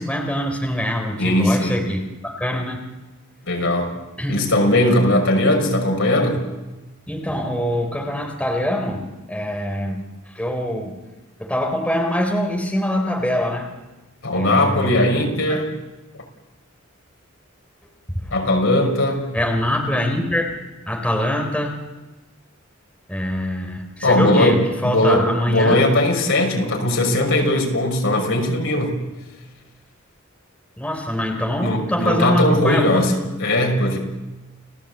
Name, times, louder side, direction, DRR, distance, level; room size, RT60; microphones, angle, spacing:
voice 1, 0.0-2.1 2.4-2.9 4.2-4.4 7.1-10.0 10.3-11.0 11.4-13.7 14.3-15.2 18.2-18.3 19.3-20.6 20.9-21.8 23.1-25.8 30.8-33.2, equal, 5° left, 2 dB, 3.7 m, -24 dB
voice 2, 1.2-1.8 3.4-3.9 4.3-6.4 14.2-15.7 16.1-16.2 18.3-19.3 24.0-29.0 31.6-34.0, left 1 dB, 65° left, 2 dB, 5.8 m, -19 dB
30.0 x 17.5 x 8.2 m, 1.1 s
head